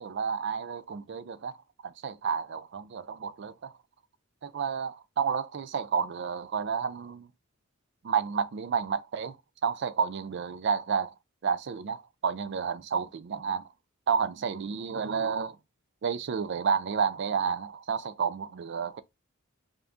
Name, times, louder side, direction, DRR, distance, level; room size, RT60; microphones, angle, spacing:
voice 1, 0.0-1.6 1.8-3.7 4.4-7.3 8.0-9.4 9.6-11.1 11.4-13.6 14.1-15.6 16.0-19.0, right 6 dB, 55° right, 0.4 m, -30 dB
3.5 x 2.7 x 3.4 m
head